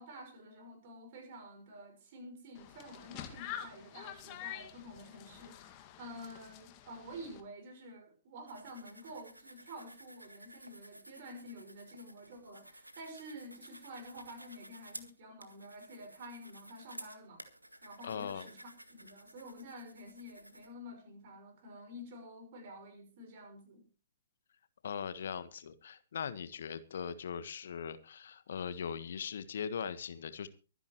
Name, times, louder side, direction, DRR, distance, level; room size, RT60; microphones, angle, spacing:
voice 1, 0.0-17.4 17.8-23.9, equal, 40° right, 5.9 m, -50 dB
sound 1, 2.5-7.4, left 11 dB, 30° left, 1.9 m, -47 dB
sound 2, 8.5-20.7, right 1 dB, 90° right, 1.7 m, -54 dB
voice 2, 18.0-18.5 24.8-30.5, left 7 dB, 55° left, 1.5 m, -40 dB
24.0 x 10.0 x 3.1 m
figure-of-eight pair, 120°, 0 cm